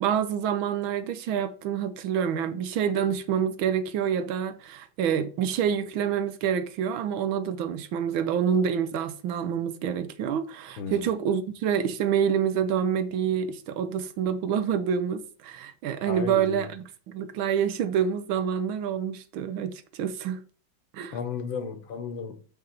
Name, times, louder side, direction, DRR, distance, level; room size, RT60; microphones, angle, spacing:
voice 1, 0.0-20.4 20.9-21.2, right 8 dB, 85° right, 1.6 m, -27 dB
voice 2, 16.1-16.7 21.1-22.5, left 6 dB, 80° left, 1.8 m, -34 dB
6.9 x 5.3 x 4.2 m
omnidirectional pair, 2.2 m